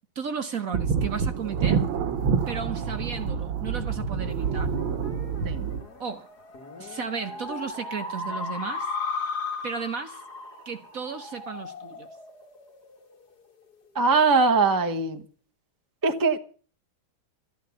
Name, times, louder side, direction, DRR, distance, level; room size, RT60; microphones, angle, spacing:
voice 1, 0.1-1.9 2.5-4.7 6.0-6.3 6.8-8.9 9.6-10.2 10.6-12.1, right 6 dB, 50° right, 1.3 m, -34 dB
sound 1, 0.7-5.8, right 6 dB, 80° right, 2.1 m, -27 dB
sound 2, 4.4-13.2, left 3 dB, 50° left, 2.4 m, -36 dB
voice 2, 13.9-15.2 16.0-16.4, right 4 dB, 15° right, 0.8 m, -21 dB
13.5 x 11.0 x 6.9 m
omnidirectional pair, 2.2 m